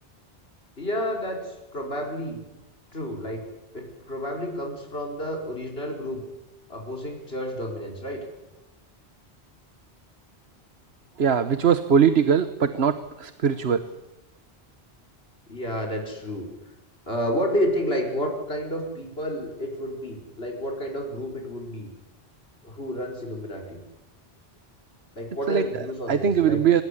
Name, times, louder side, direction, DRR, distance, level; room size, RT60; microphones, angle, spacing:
voice 1, 0.8-2.4 2.9-3.4 3.7-6.2 6.7-8.3 15.5-16.5 17.1-21.9 22.6-23.8 25.1-26.6, equal, 65° left, 1 dB, 5.1 m, -30 dB
voice 2, 11.2-13.8 25.5-25.6 26.1-26.8, right 7 dB, 75° right, 11 dB, 1.3 m, -21 dB
25.5 x 19.5 x 10.0 m, 0.99 s
omnidirectional pair, 1.1 m